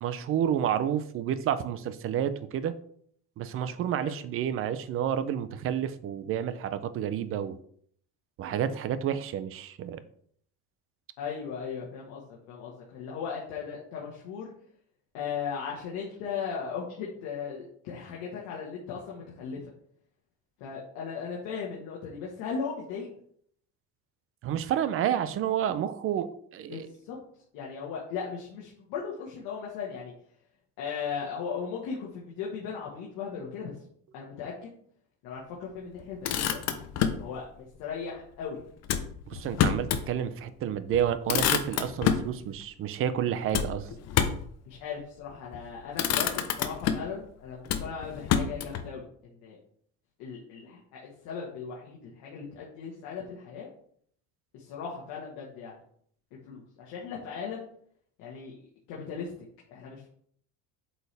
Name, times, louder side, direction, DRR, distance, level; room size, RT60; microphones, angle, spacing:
voice 1, 0.0-2.8 3.4-7.6 8.4-10.0 24.4-26.9 39.3-43.9, right 9 dB, 40° right, 13 dB, 0.5 m, -30 dB
voice 2, 11.2-14.5 15.1-19.7 20.6-23.1 26.7-27.2 27.5-30.1 30.8-33.8 34.1-34.7 35.2-36.6 37.2-38.6 44.7-49.6 50.2-53.7 54.5-55.8 56.4-57.7 58.2-58.6 58.9-60.1, left 6 dB, 75° left, -3 dB, 1.6 m, -37 dB
Motor vehicle (road), 36.0-37.3 38.8-40.1 40.5-40.6 40.9-42.3 43.5-44.5 45.4-45.6 45.9-47.2 47.7-48.9, left 8 dB, 45° left, 0.7 m, -28 dB
8.1 x 4.5 x 3.4 m, 0.63 s
cardioid pair, 155°, 34 cm